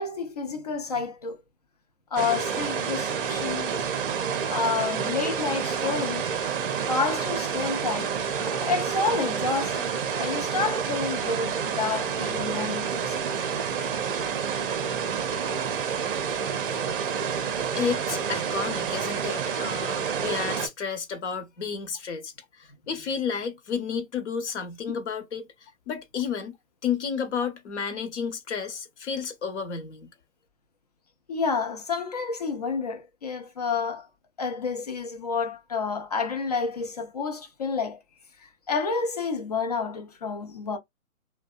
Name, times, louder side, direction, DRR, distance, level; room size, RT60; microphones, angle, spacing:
voice 1, 0.0-1.4 2.1-3.7 4.5-6.3 6.9-8.2 8.4-13.2 31.3-34.1 34.4-38.0 38.4-40.8, left 4 dB, 30° left, 0.4 m, -29 dB
sound 1, 2.2-20.7, right 7 dB, 40° right, 0.6 m, -29 dB
voice 2, 17.7-26.5 26.8-30.1, left 6 dB, 55° left, 0.9 m, -31 dB
2.6 x 2.1 x 2.3 m
hypercardioid pair, 140°, 43 cm